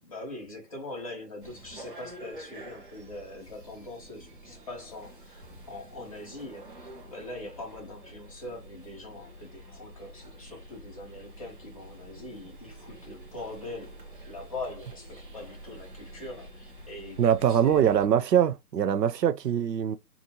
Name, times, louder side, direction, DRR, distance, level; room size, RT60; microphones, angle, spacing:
voice 1, 0.0-18.0, left 2 dB, 20° left, 0.9 m, -42 dB
sound 1, 1.4-18.1, equal, 30° right, 0.7 m, -48 dB
voice 2, 17.2-20.0, right 9 dB, 70° right, 0.6 m, -23 dB
2.7 x 2.4 x 2.8 m
hypercardioid pair, 160°, 50 cm